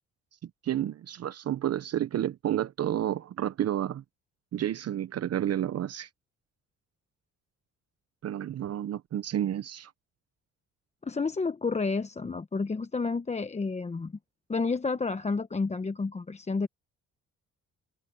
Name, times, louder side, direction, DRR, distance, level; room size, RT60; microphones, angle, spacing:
voice 1, 0.4-4.0 4.5-6.1 8.2-9.9, right 11 dB, 55° right, 0.8 m, -30 dB
voice 2, 11.0-14.1 14.5-16.7, left 4 dB, 20° left, 0.9 m, -30 dB
open air
cardioid pair, 90°, 30 cm